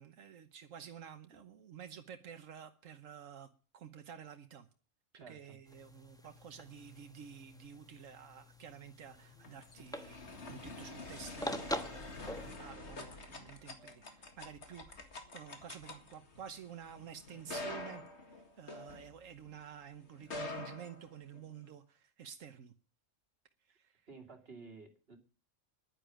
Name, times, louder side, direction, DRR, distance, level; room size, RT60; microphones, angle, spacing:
voice 1, 0.0-4.7 5.1-22.7 23.6-24.1, right 8 dB, 90° right, 7 dB, 1.4 m, -51 dB
voice 2, 5.1-5.6 24.1-25.2, right 4 dB, 50° right, 3 dB, 2.9 m, -53 dB
sound 1, 5.7-12.5, equal, 5° left, 1.1 m, -45 dB
sound 2, 9.2-19.6 20.1-21.7, left 2 dB, 60° left, 2.3 m, -47 dB
11.0 x 9.9 x 9.1 m, 0.38 s
omnidirectional pair, 1.3 m